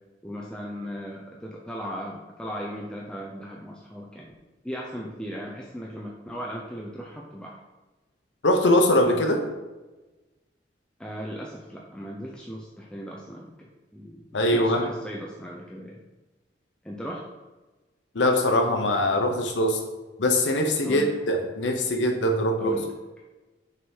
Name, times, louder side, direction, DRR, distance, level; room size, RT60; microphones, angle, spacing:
voice 1, 0.2-4.3 4.6-7.6 11.0-16.0 16.8-17.3 20.8-21.1 22.6-22.9, equal, 5° left, -3 dB, 0.5 m, -37 dB
voice 2, 8.4-9.4 14.3-14.9 18.1-19.8 20.2-22.8, left 1 dB, 85° left, 4 dB, 0.9 m, -22 dB
6.3 x 3.6 x 4.4 m, 1.2 s
head